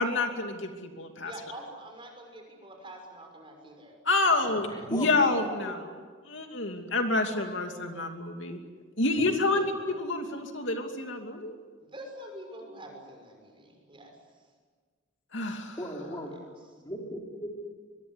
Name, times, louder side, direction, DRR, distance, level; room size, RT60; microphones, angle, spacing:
voice 1, 0.0-1.3 4.0-5.9 6.3-8.6 9.0-11.6 15.3-15.8, left 2 dB, 70° left, 4 dB, 2.7 m, -28 dB
voice 2, 1.2-4.0 4.3-4.5 9.4-10.0 11.8-14.1 15.9-16.2, right 1 dB, 25° right, 2 dB, 6.1 m, -46 dB
voice 3, 4.7-5.1 5.6-5.7 9.1-9.3 15.8-16.3 16.8-17.5, equal, 20° left, 0 dB, 4.8 m, -37 dB
24.5 x 22.5 x 9.9 m, 1.5 s
head